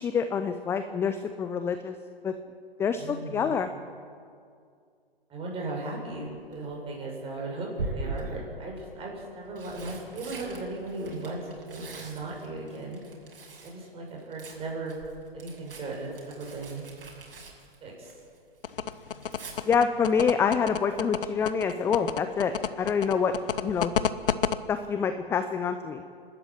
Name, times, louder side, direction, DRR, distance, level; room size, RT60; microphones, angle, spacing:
voice 1, 0.0-1.9 2.2-2.3 2.8-3.7 19.7-22.5 22.8-23.3 23.6-23.9 24.7-26.0, left 6 dB, 10° left, 9 dB, 0.6 m, -26 dB
voice 2, 2.9-3.6 5.3-13.0 13.6-15.0 15.3-16.8 17.8-18.1, right 2 dB, 20° right, -1 dB, 7.2 m, -37 dB
Tearing, 6.3-6.7 7.7-8.5 9.3-13.8 14.1-18.4 18.7-19.5 21.4-21.7 22.0-22.1, right 3 dB, 65° right, 7.0 m, -41 dB
sound 1, 18.6-24.6, left 8 dB, 65° left, 1.1 m, -29 dB
29.0 x 13.0 x 8.9 m, 2.3 s
figure-of-eight pair, 125°, 30 cm